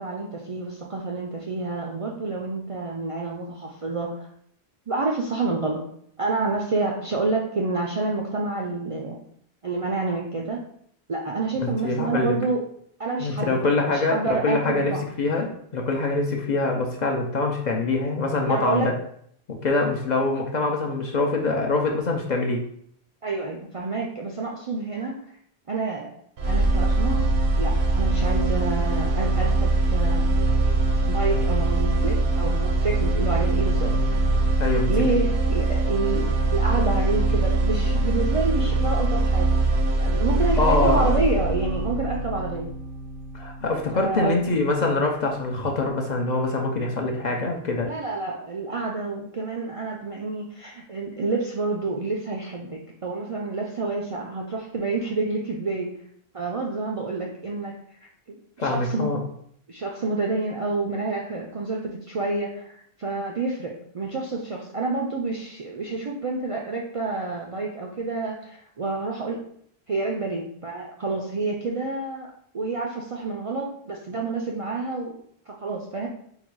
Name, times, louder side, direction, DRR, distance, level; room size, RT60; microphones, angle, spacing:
voice 1, 0.0-4.3 4.9-5.8 6.2-9.2 9.6-10.6 11.1-12.6 13.0-13.5 13.9-15.0 18.5-18.9 23.2-25.2 25.7-26.1 26.5-27.2 27.5-30.3 31.1-34.2 34.9-39.5 40.0-42.7 43.4-43.5 43.9-44.5 47.8-55.9 56.3-57.7 58.3-59.1 59.7-69.4 69.9-72.3 72.5-75.1 75.5-76.1, right 3 dB, 50° right, -1 dB, 0.4 m, -28 dB
voice 2, 11.6-12.4 13.2-18.9 19.6-22.6 34.6-34.9 40.6-41.2 43.3-47.9 58.6-59.2, left 3 dB, 55° left, 1 dB, 0.6 m, -24 dB
sound 1, 26.4-44.4, right 2 dB, 80° right, 0.9 m, -23 dB
3.8 x 2.3 x 4.5 m, 0.67 s
omnidirectional pair, 1.1 m